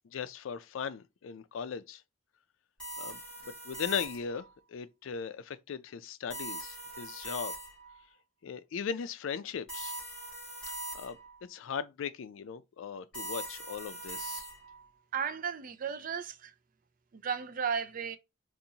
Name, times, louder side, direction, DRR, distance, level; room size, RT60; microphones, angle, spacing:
voice 1, 0.1-2.0 3.0-7.5 8.4-10.0 10.9-11.2 11.5-14.5, left 7 dB, 80° left, 0.4 m, -38 dB
sound 1, 2.8-4.4 6.3-8.0 9.7-11.4 13.1-14.8, right 1 dB, 5° left, 2.0 m, -41 dB
voice 2, 15.1-16.5 17.1-18.2, right 7 dB, 45° right, 0.4 m, -34 dB
4.0 x 2.5 x 2.8 m
head